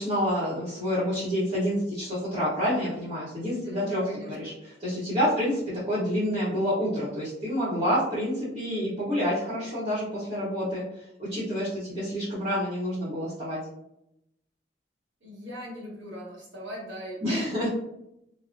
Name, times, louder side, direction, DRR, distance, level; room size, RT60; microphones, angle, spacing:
voice 1, 0.0-10.8 11.2-13.6 17.2-17.7, equal, 30° right, -12 dB, 0.9 m, -28 dB
voice 2, 3.6-4.6 5.2-5.4 15.2-17.4, equal, 85° right, -4 dB, 1.1 m, -40 dB
3.5 x 2.0 x 2.4 m, 0.83 s
head